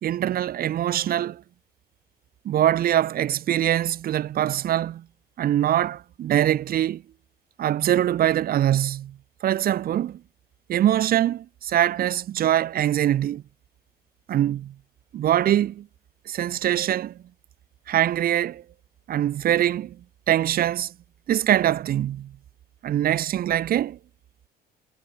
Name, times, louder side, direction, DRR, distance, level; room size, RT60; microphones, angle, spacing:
voice 1, 0.0-1.4 2.5-5.0 5.4-7.0 7.6-9.1 9.4-10.2 10.7-13.4 14.3-14.7 15.1-15.9 16.3-17.1 17.9-18.6 19.1-20.0 20.3-20.9 21.3-22.3 22.8-24.0, right 11 dB, 60° right, 3.7 m, -23 dB
cardioid pair, 110°, 17 cm